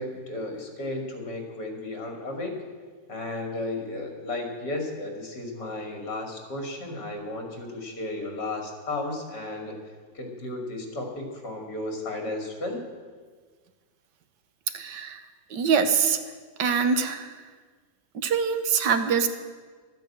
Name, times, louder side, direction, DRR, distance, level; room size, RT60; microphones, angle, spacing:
voice 1, 0.0-2.5 3.1-9.8 10.1-12.8, left 2 dB, 70° left, 3 dB, 3.0 m, -34 dB
voice 2, 14.7-15.2 15.5-16.2 16.6-17.3 18.1-19.3, right 6 dB, 80° right, 9 dB, 1.6 m, -24 dB
12.5 x 9.3 x 8.5 m, 1.5 s
omnidirectional pair, 1.9 m